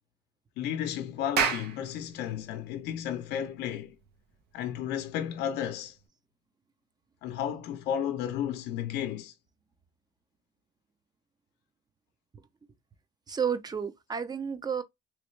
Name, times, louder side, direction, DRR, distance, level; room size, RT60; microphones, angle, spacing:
voice 1, 0.6-4.0 4.5-6.0 7.2-9.3, left 9 dB, 80° left, 0.6 m, -33 dB
Clapping, 1.1-6.0, right 6 dB, 75° right, 0.8 m, -34 dB
voice 2, 13.3-14.8, right 7 dB, 25° right, 0.5 m, -31 dB
3.1 x 3.0 x 3.1 m
cardioid pair, 110°, 17 cm